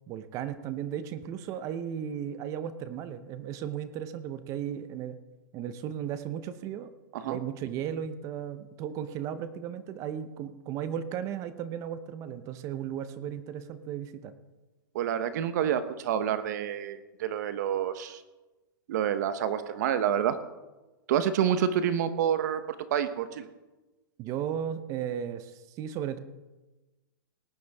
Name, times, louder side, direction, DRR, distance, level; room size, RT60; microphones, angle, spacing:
voice 1, 0.1-5.2 5.5-6.9 7.3-14.3 24.2-26.2, right 9 dB, 30° right, 12 dB, 0.8 m, -35 dB
voice 2, 14.9-18.2 18.9-20.4 21.1-23.5, right 9 dB, 55° right, 12 dB, 1.0 m, -28 dB
19.0 x 9.4 x 3.5 m, 1.1 s
hypercardioid pair, 150°, 11 cm